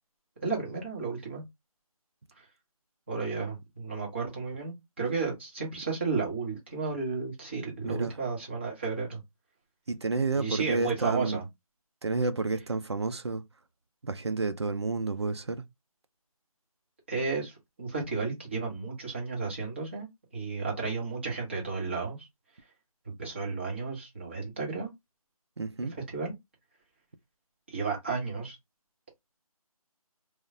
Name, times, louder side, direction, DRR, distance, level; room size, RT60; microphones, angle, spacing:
voice 1, 0.4-1.4 3.1-9.2 10.3-11.4 17.1-20.1 20.3-22.3 23.2-24.9 26.1-26.3 27.7-28.6, right 4 dB, 20° right, 0.8 m, -33 dB
voice 2, 7.8-8.2 9.9-11.4 12.0-13.4 14.0-15.6 25.6-26.0, right 3 dB, 45° right, 0.4 m, -30 dB
3.1 x 2.0 x 2.5 m
figure-of-eight pair, 165°, 19 cm